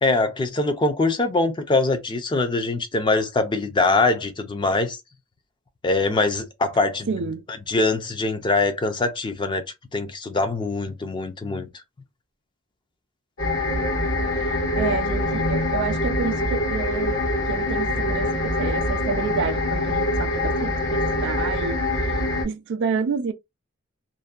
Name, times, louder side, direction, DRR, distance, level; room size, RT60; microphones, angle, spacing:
voice 1, 0.0-5.0 5.8-7.1 7.7-9.6 9.9-11.8, left 3 dB, 20° left, 0.4 m, -23 dB
voice 2, 7.1-7.4 14.3-17.2 17.5-22.2 22.4-23.3, right 5 dB, 55° right, 0.4 m, -29 dB
sound 1, 13.4-22.4, left 1 dB, 70° left, 1.2 m, -24 dB
2.6 x 2.1 x 2.3 m
head